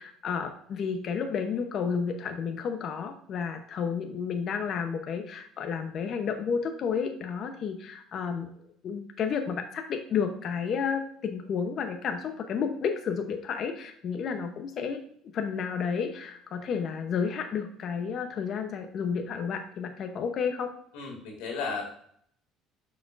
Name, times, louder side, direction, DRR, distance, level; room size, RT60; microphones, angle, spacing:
voice 1, 0.0-8.5 8.8-15.0 15.3-20.7, left 6 dB, 50° left, 6 dB, 0.8 m, -31 dB
voice 2, 20.9-21.9, left 4 dB, 90° left, 0 dB, 2.3 m, -34 dB
6.8 x 6.3 x 2.5 m, 0.64 s
cardioid pair, 110°, 0 cm